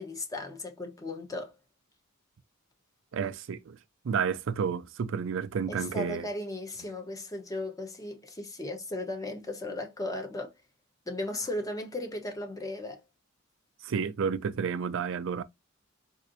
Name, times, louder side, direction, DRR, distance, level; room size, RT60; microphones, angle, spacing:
voice 1, 0.0-1.5 5.7-10.5 11.1-13.0, left 2 dB, 15° left, 0.8 m, -36 dB
voice 2, 3.1-3.8 4.0-6.3 13.8-15.4, right 6 dB, 65° right, 0.4 m, -31 dB
4.2 x 2.6 x 2.6 m
head